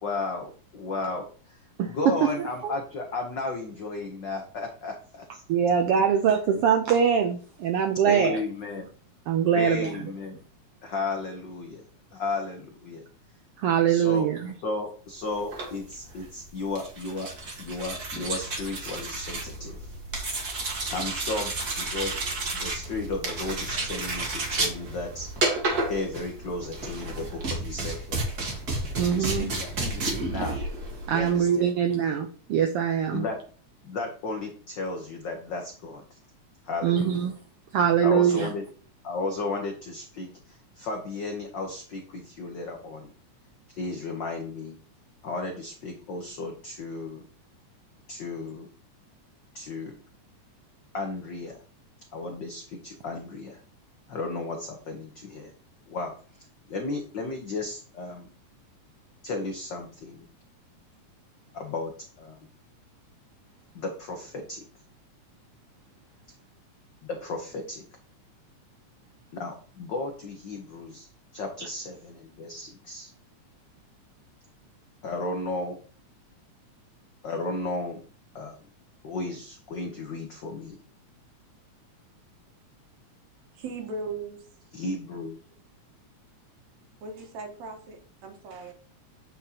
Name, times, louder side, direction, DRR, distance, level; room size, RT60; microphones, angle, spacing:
voice 1, 0.0-5.3 6.0-6.1 8.0-8.9 9.5-10.4 10.8-11.8 12.1-13.1 13.9-14.2 14.6-17.3 17.6-19.9 20.9-22.2 22.5-25.3 25.9-28.2 28.9-30.6 31.1-31.7 33.1-33.4 33.8-36.2 36.6-37.3 38.0-38.6 39.0-43.1 43.7-44.8 45.2-47.2 48.1-48.7 49.5-50.0 50.9-51.6 52.1-53.6 54.1-55.5 55.9-58.3 59.2-60.2 61.5-62.4 63.7-64.6 67.0-67.8 69.3-73.1 75.0-75.8 77.2-78.0 78.3-78.5 79.0-80.8 84.7-85.4, left 3 dB, 75° left, 1.0 m, -34 dB
voice 2, 5.5-8.4 9.3-9.9 13.6-14.5 29.0-29.5 31.1-33.2 36.8-37.3 37.7-38.5, right 8 dB, 90° right, 1.2 m, -23 dB
sound 1, 15.4-31.4, right 2 dB, 40° right, 1.6 m, -32 dB
voice 3, 83.6-84.5 87.0-88.7, right 3 dB, 70° right, 2.4 m, -38 dB
8.3 x 5.8 x 2.8 m
omnidirectional pair, 3.4 m